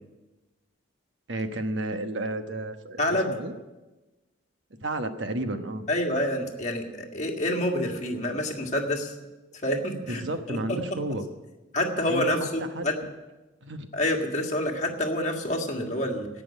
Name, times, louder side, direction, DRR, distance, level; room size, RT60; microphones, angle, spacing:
voice 1, 1.3-3.5 4.8-5.8 10.1-11.3 12.1-12.5 12.7-12.9 13.6-13.9, right 1 dB, 60° right, 7 dB, 1.2 m, -32 dB
voice 2, 3.0-3.3 5.9-9.1 9.6-10.2 10.5-11.0 11.7-13.0 13.9-16.3, left 1 dB, 35° left, 1 dB, 1.8 m, -27 dB
17.0 x 6.2 x 9.3 m, 1.1 s
head